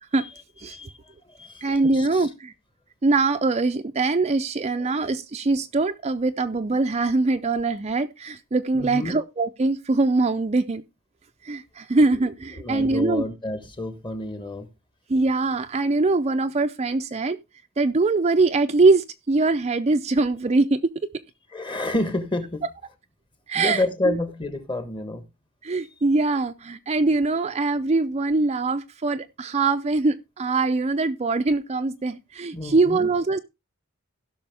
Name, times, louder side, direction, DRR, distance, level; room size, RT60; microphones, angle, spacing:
voice 1, 0.7-2.3 4.8-4.9 8.7-9.1 12.5-14.7 21.5-22.6 23.5-25.2 32.5-33.1, left 2 dB, 20° left, 1.2 m, -29 dB
voice 2, 1.6-2.5 3.0-10.8 11.4-13.2 15.1-17.4 17.8-20.9 23.5-24.2 25.6-33.4, right 3 dB, 30° right, 0.5 m, -22 dB
16.5 x 6.1 x 3.4 m
head